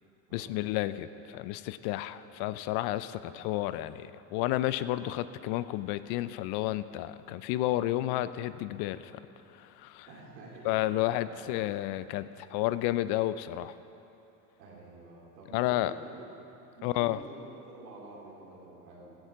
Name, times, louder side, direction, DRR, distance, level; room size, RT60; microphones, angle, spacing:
voice 1, 0.3-9.2 9.5-10.1 10.6-13.8 15.5-15.9 16.8-17.2, left 15 dB, 50° left, 14 dB, 0.6 m, -31 dB
voice 2, 10.1-11.5 12.1-12.2 14.6-16.4 16.7-19.2, right 2 dB, 80° right, -4 dB, 3.8 m, -49 dB
16.0 x 13.5 x 3.7 m, 2.8 s
hypercardioid pair, 80°, 49 cm